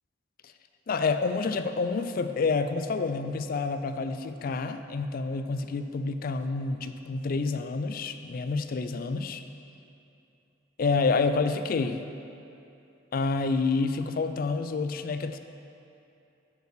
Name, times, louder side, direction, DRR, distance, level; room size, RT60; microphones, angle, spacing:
voice 1, 0.9-9.4 10.8-12.0 13.1-15.4, left 4 dB, 50° left, 9 dB, 0.4 m, -28 dB
6.1 x 5.3 x 6.5 m, 2.8 s
head